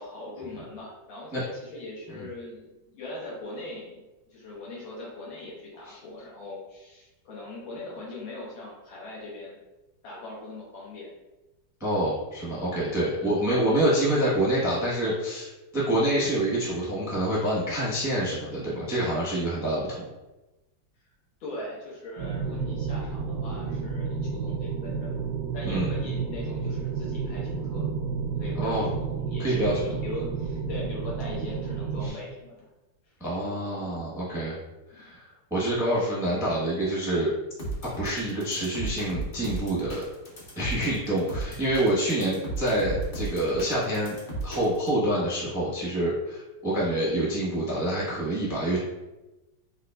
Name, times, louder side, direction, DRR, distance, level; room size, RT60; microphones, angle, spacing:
voice 1, 0.0-9.6 10.0-11.1 13.0-13.3 21.4-25.2 25.5-27.9 28.3-29.6 29.8-32.7 33.0-33.1 34.3-34.5 34.9-35.1, left 2 dB, 80° left, -5 dB, 1.9 m, -40 dB
voice 2, 11.8-20.0 25.6-25.9 28.6-28.9 29.4-29.7 32.0-32.1 33.2-34.5 34.9-35.2 35.5-37.3 38.0-40.0 40.6-44.1 44.4-48.8, right 1 dB, 5° right, -7 dB, 0.5 m, -27 dB
sound 1, 22.2-32.1, right 5 dB, 75° right, 0.8 m, -31 dB
sound 2, 37.6-44.9, right 2 dB, 45° left, 0.7 m, -35 dB
4.8 x 2.5 x 2.3 m, 1.0 s
omnidirectional pair, 2.1 m